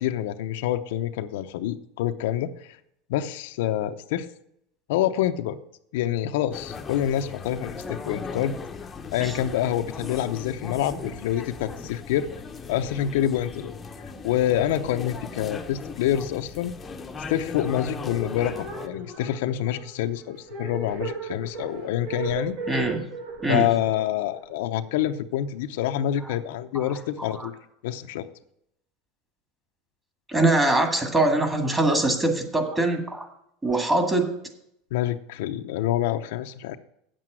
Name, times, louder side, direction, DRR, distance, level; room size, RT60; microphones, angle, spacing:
voice 1, 0.0-2.7 3.1-4.3 4.9-5.6 5.9-8.6 9.1-12.3 12.7-13.7 14.2-16.7 17.3-22.6 23.5-27.5 27.8-28.3 34.9-36.8, left 11 dB, 75° left, 8 dB, 0.6 m, -27 dB
sound 1, 6.5-18.9, left 5 dB, 20° left, 0.8 m, -38 dB
sound 2, 17.9-25.1, right 3 dB, 50° right, 2.3 m, -37 dB
voice 2, 22.7-23.1 23.4-23.7 26.7-27.5 30.3-33.3 33.6-34.3, right 2 dB, 15° right, 5 dB, 1.9 m, -23 dB
8.7 x 7.6 x 6.2 m, 0.74 s
supercardioid pair, 135°, 0 cm